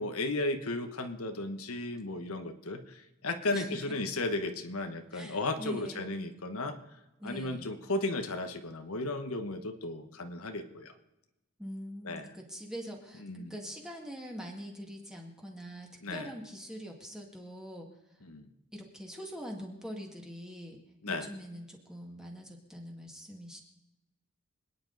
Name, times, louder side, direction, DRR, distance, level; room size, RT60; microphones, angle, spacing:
voice 1, 0.0-6.8 7.2-10.9 12.0-12.3 13.2-13.5 16.0-16.3 18.2-18.5 21.0-21.3, left 2 dB, 75° left, 7 dB, 1.2 m, -35 dB
voice 2, 5.1-6.0 7.2-7.7 11.6-17.9 18.7-20.8 21.1-23.6, equal, 5° right, 0 dB, 2.0 m, -43 dB
26.0 x 9.8 x 4.0 m, 0.96 s
head